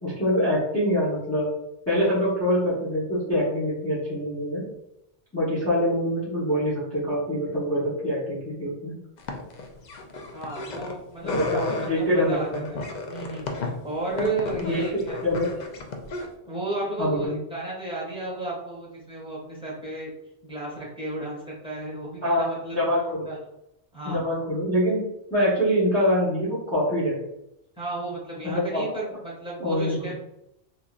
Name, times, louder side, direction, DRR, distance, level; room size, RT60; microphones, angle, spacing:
voice 1, 0.0-1.5 1.9-4.6 5.3-9.0 11.3-12.7 14.2-14.3 14.6-15.5 17.0-17.4 22.2-22.4 22.7-23.3 24.0-25.0 25.3-27.2 28.4-28.8 29.6-30.1, equal, 15° left, -10 dB, 1.0 m, -25 dB
sound 1, 9.2-11.0 11.2-11.9 12.5-16.3, left 3 dB, 60° left, 0.5 m, -33 dB
voice 2, 10.3-12.8 13.1-15.2 16.4-20.1 20.4-22.8 23.2-23.4 23.9-24.3 27.8-30.2, right 2 dB, 5° right, -6 dB, 1.4 m, -33 dB
3.7 x 2.9 x 2.4 m, 0.82 s
omnidirectional pair, 1.2 m